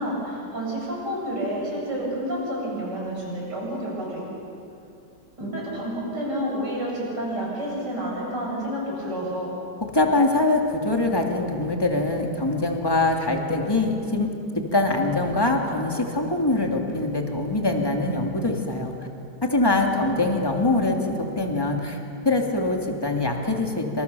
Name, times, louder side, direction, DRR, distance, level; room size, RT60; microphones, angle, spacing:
voice 1, 0.0-4.2 5.4-9.5 19.6-20.3, equal, 85° right, -4 dB, 8.4 m, -30 dB
voice 2, 9.9-14.3 14.7-18.9 19.4-21.0 21.4-22.0 22.2-24.0, left 2 dB, 15° left, 2 dB, 2.7 m, -23 dB
28.0 x 26.5 x 7.0 m, 2.6 s
omnidirectional pair, 1.8 m